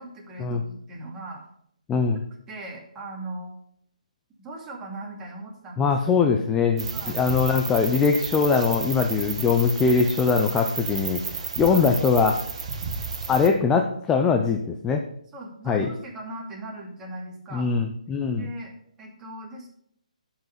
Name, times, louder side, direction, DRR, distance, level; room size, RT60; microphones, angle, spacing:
voice 1, 0.0-1.4 2.5-3.5 4.4-6.2 6.9-7.2 11.6-11.9 15.3-17.7 18.3-18.7 19.0-19.7, right 2 dB, 15° right, -3 dB, 2.6 m, -39 dB
voice 2, 1.9-2.2 5.8-12.4 13.3-15.0 15.7-15.9 17.5-18.5, left 5 dB, 10° left, 3 dB, 0.7 m, -22 dB
sound 1, 6.8-13.5, right 5 dB, 45° right, 1.8 m, -32 dB
11.5 x 5.9 x 5.6 m, 0.69 s
figure-of-eight pair, 145°, 4 cm